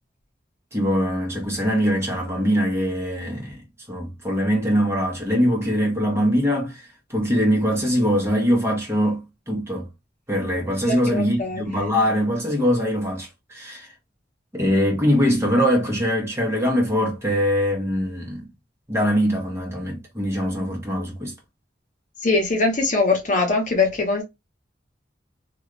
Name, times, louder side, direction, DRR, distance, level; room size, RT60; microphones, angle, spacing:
voice 1, 0.7-3.6 3.9-9.9 10.3-13.9 14.5-18.5 18.9-21.3, equal, 15° right, 1.2 m, -22 dB
voice 2, 10.8-11.7 22.2-24.2, left 3 dB, 45° left, 1.0 m, -22 dB
3.0 x 2.5 x 3.1 m
head